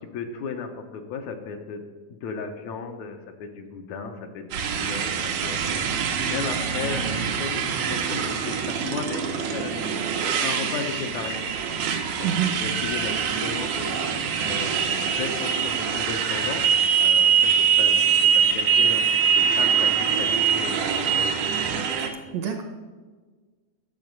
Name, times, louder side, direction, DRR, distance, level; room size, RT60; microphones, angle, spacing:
voice 1, 0.1-1.8 2.1-11.4 12.2-14.7 15.1-18.0 18.5-20.3 20.5-20.9, left 5 dB, 70° left, 5 dB, 2.0 m, -35 dB
Motorcycle, 4.5-22.1, right 7 dB, 90° right, 2.5 m, -24 dB
voice 2, 12.2-12.6 22.0-22.6, right 9 dB, 70° right, 5 dB, 1.8 m, -27 dB
11.0 x 7.3 x 5.2 m, 1.4 s
omnidirectional pair, 3.6 m